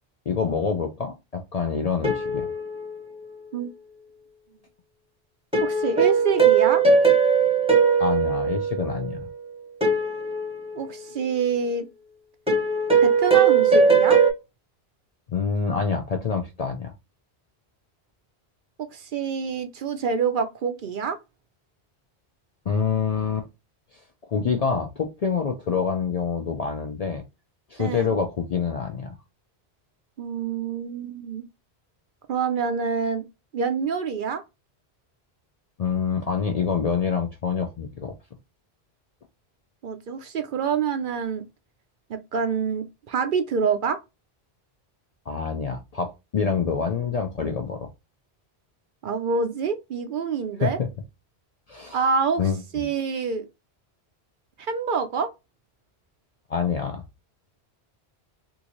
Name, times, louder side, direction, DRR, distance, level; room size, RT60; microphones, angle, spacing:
voice 1, 0.3-2.5 8.0-9.3 15.3-16.9 22.7-23.5 24.2-27.2 27.7-29.2 35.8-38.1 45.3-47.9 50.6-50.9 51.7-52.0 52.4-52.9 56.5-57.0, left 6 dB, 55° left, 0.4 m, -26 dB
sound 1, 2.0-3.6 5.5-9.2 9.8-11.3 12.5-14.3, right 5 dB, 5° right, 0.8 m, -20 dB
voice 2, 5.6-6.8 10.7-11.9 13.0-14.2 18.8-21.2 27.8-28.1 30.2-31.4 32.3-33.2 33.5-34.4 39.8-41.4 42.1-44.0 49.0-50.8 51.9-53.5 54.6-55.3, right 6 dB, 60° right, 0.6 m, -26 dB
3.6 x 2.6 x 2.9 m
omnidirectional pair, 1.1 m